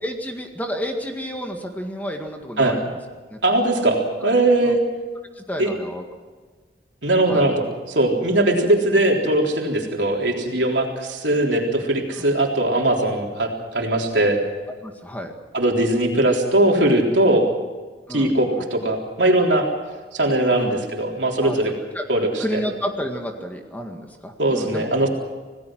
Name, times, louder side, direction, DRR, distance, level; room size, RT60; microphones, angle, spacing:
voice 1, 0.0-2.8 3.3-3.4 4.2-4.3 4.6-4.8 5.4-6.0 7.3-7.5 14.8-15.3 18.1-18.7 20.2-20.8 21.4-21.6 21.9-24.9, equal, 10° left, 3 dB, 1.9 m, -31 dB
voice 2, 3.4-4.8 5.6-5.7 7.0-14.4 15.5-17.5 18.1-19.7 20.1-21.7 22.1-22.6 24.4-25.1, right 1 dB, 80° right, 0 dB, 3.7 m, -20 dB
27.0 x 18.0 x 6.3 m, 1.4 s
head